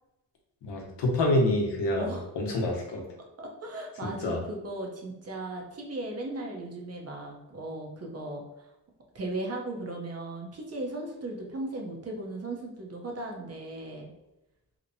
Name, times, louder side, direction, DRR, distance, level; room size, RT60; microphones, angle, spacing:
voice 1, 0.6-3.0 4.0-4.4, left 1 dB, 75° left, 1 dB, 0.8 m, -27 dB
voice 2, 2.0-2.3 3.4-8.4 9.1-14.1, right 2 dB, 35° right, 1 dB, 0.6 m, -37 dB
2.9 x 2.1 x 2.5 m, 0.88 s
cardioid pair, 90°, 42 cm